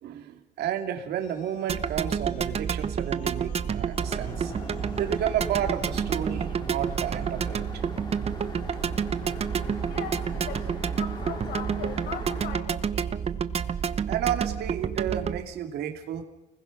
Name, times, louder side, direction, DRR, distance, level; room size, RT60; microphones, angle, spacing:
voice 1, 0.0-4.5 5.0-7.6 14.1-16.2, right 10 dB, 75° right, 5 dB, 2.7 m, -31 dB
sound 1, 1.2-6.2, left 3 dB, 50° left, 4.1 m, -49 dB
sound 2, 1.7-15.4, right 7 dB, 35° right, 1.0 m, -29 dB
sound 3, 4.0-12.6, left 1 dB, 25° left, 5.1 m, -41 dB
voice 2, 9.9-13.2, left 8 dB, 75° left, 6 dB, 5.5 m, -39 dB
29.5 x 20.5 x 6.1 m, 1.0 s
cardioid pair, 110°, 17 cm